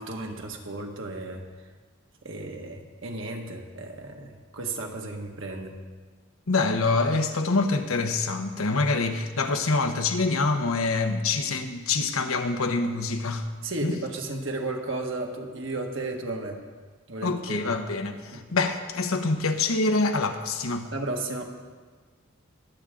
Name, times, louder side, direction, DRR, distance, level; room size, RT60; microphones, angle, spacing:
voice 1, 0.0-1.7 2.2-5.8 13.6-16.6 17.1-17.7 18.3-18.4 20.8-21.5, right 2 dB, 65° right, 2 dB, 1.6 m, -34 dB
voice 2, 6.5-13.5 13.8-13.9 17.2-20.9, left 3 dB, 90° left, 6 dB, 1.0 m, -25 dB
22.5 x 8.5 x 3.8 m, 1.5 s
head